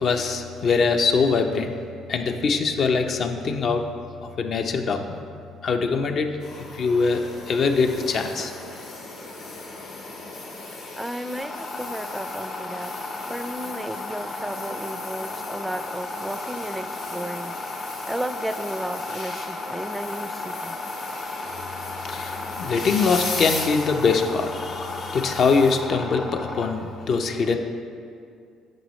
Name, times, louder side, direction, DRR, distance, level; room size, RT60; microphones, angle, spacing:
voice 1, 0.0-1.7 2.1-3.8 4.2-5.2 5.6-6.3 6.7-8.5 22.0-27.6, left 4 dB, 55° left, 5 dB, 0.6 m, -23 dB
sound 1, 6.4-25.8, left 3 dB, 80° left, 1.5 m, -37 dB
voice 2, 10.7-12.9 13.3-20.8, right 1 dB, 5° right, 11 dB, 0.4 m, -34 dB
sound 2, 11.3-26.7, left 2 dB, 40° left, 1.0 m, -35 dB
8.9 x 6.3 x 3.1 m, 2.3 s
supercardioid pair, 80°, 0 cm